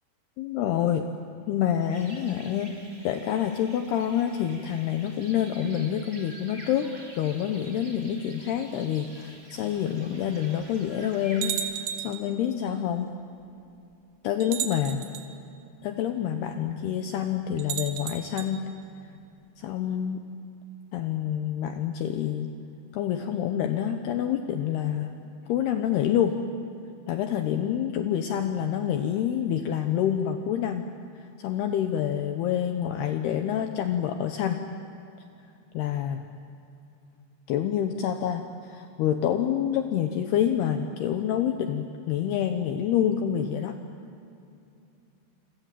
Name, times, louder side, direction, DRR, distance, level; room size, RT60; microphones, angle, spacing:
voice 1, 0.4-1.1 1.5-2.8 3.0-13.1 14.2-15.1 15.8-18.7 19.6-20.2 20.9-22.5 22.9-25.1 25.5-26.4 27.1-30.9 31.1-34.6 35.7-36.2 37.5-43.8, left 9 dB, 75° left, 6 dB, 2.4 m, -27 dB
sound 1, 1.9-11.5, right 1 dB, 20° right, 1.6 m, -48 dB
sound 2, 9.8-9.9 10.6-10.7 11.4-12.3 13.4-13.5 14.4-15.3 17.6-18.5, right 9 dB, 65° right, 3.1 m, -33 dB
27.5 x 25.5 x 7.5 m, 2.5 s
omnidirectional pair, 5.7 m